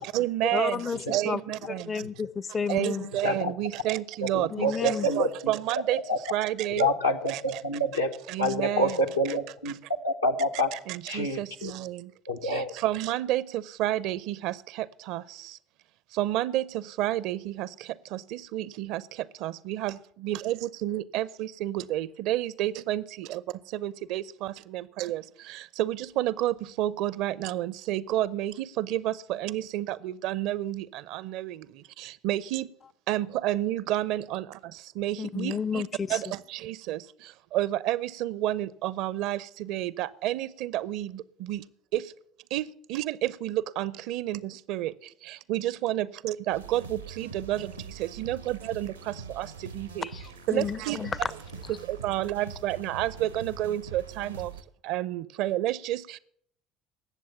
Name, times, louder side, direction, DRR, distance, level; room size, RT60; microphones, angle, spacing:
voice 1, 0.0-2.0 2.7-6.9 7.3-7.6 8.3-9.0 10.7-12.1 12.4-15.6 16.1-20.0 20.2-23.4 23.7-32.7 33.1-34.5 34.8-35.8 36.1-41.7 41.9-42.1 42.5-50.1 50.5-51.0 51.9-54.5 54.8-56.2, right 14 dB, 55° right, 0.5 m, -30 dB
voice 2, 0.5-1.4 1.9-3.1 4.5-5.1 35.2-36.2 50.0-51.2, left 6 dB, 30° left, 0.5 m, -31 dB
voice 3, 4.3-5.5 6.1-6.2 6.8-8.1 8.4-9.7 10.0-10.7 11.1-11.7 12.3-12.7, equal, 85° left, 1.0 m, -27 dB
sound 1, 46.5-54.6, right 5 dB, 85° right, 0.8 m, -43 dB
19.0 x 7.4 x 7.1 m
figure-of-eight pair, 60°, 0 cm